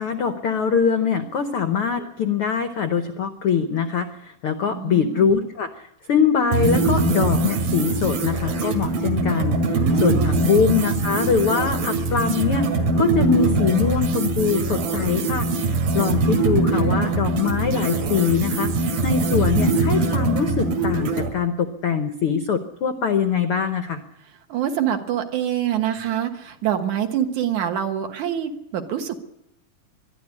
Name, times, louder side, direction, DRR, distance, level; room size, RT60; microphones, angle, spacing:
voice 1, 0.0-12.7 13.0-15.5 15.9-18.7 19.0-24.0, left 6 dB, 80° left, 8 dB, 1.2 m, -23 dB
voice 2, 4.7-5.2 9.7-10.5 16.3-17.2 24.5-29.2, right 10 dB, 65° right, 5 dB, 2.6 m, -26 dB
sound 1, 6.5-21.3, right 3 dB, 90° right, 3.9 m, -22 dB
21.5 x 12.5 x 9.8 m, 0.81 s
omnidirectional pair, 3.9 m